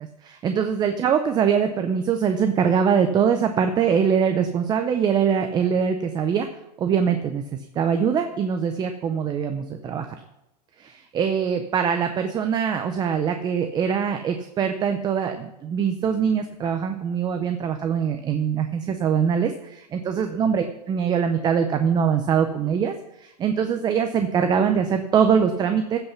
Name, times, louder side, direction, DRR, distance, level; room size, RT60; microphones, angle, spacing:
voice 1, 0.2-6.5 6.8-10.1 10.8-26.0, right 7 dB, 20° right, 7 dB, 0.6 m, -23 dB
15.5 x 5.6 x 5.7 m, 0.87 s
supercardioid pair, 145°, 21 cm